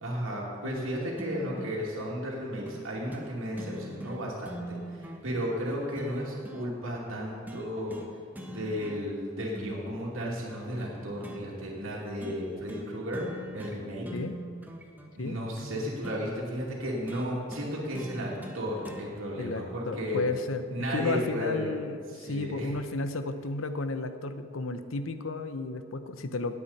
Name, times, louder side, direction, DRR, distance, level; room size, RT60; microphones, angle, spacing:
voice 1, 0.0-8.0 8.4-13.2 13.5-14.1 15.1-20.2 20.7-21.7 22.1-22.7, equal, 75° right, -4 dB, 2.5 m, -34 dB
sound 1, 1.2-1.8 2.7-2.8 3.1-3.3 3.6-6.7 7.5-8.1 8.3-9.2 9.5-11.4 12.2-12.4 12.7-12.9 13.1-13.8 14.0-16.2 17.1-19.1 20.1-20.2, equal, 10° right, 1.1 m, -42 dB
voice 2, 19.4-26.6, left 3 dB, 75° left, 10 dB, 0.8 m, -33 dB
18.5 x 8.5 x 4.2 m, 2.2 s
head